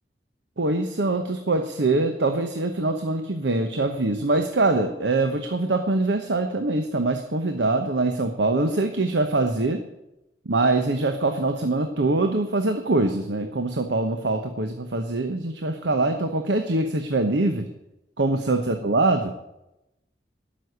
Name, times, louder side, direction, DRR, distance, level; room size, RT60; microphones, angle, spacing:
voice 1, 0.6-9.8 10.4-17.7 18.2-19.3, right 2 dB, 90° right, 7 dB, 1.0 m, -23 dB
13.0 x 6.3 x 9.5 m, 0.91 s
head